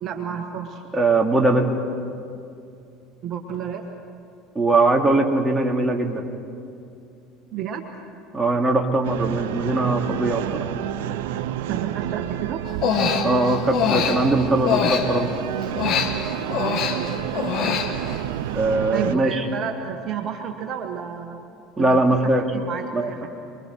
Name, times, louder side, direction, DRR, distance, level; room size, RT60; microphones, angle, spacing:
voice 1, 0.0-0.8 3.2-3.9 7.5-7.8 11.7-12.6 16.6-17.1 18.9-21.4 21.8-23.3, right 8 dB, 50° right, 4 dB, 1.6 m, -31 dB
voice 2, 0.9-1.7 4.5-6.3 8.3-10.7 13.2-15.3 18.5-19.4 21.8-22.4 22.9-23.1, right 2 dB, 15° right, 1 dB, 2.5 m, -21 dB
sound 1, 9.0-19.1, right 12 dB, 70° right, 0.6 m, -29 dB
Human voice, 12.7-15.4 15.8-18.3, left 7 dB, 55° left, 1.9 m, -24 dB
28.5 x 22.0 x 4.7 m, 2.5 s
hypercardioid pair, 70°, 0 cm